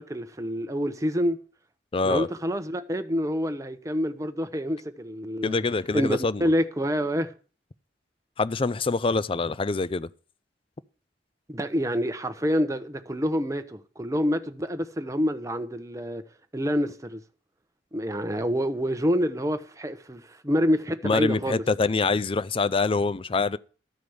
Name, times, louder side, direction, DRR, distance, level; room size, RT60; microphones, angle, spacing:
voice 1, 0.0-1.4 2.0-5.6 5.9-7.3 11.5-16.2 16.5-17.2 17.9-21.6, equal, 20° right, 0.9 m, -27 dB
voice 2, 1.9-2.3 5.4-6.5 8.4-10.1 21.0-23.6, left 3 dB, 30° left, 0.5 m, -25 dB
13.0 x 5.2 x 7.9 m
head